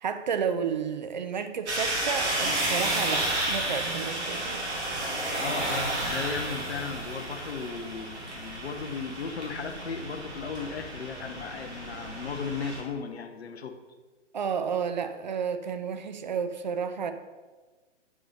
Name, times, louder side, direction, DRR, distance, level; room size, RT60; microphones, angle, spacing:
voice 1, 0.0-4.7 14.3-17.1, right 6 dB, 40° right, 9 dB, 0.4 m, -31 dB
sound 1, 1.7-12.8, right 1 dB, 65° right, 1.9 m, -32 dB
voice 2, 5.3-13.8, left 5 dB, 60° left, 6 dB, 0.8 m, -36 dB
7.7 x 5.2 x 3.4 m, 1.3 s
figure-of-eight pair, 125°, 37 cm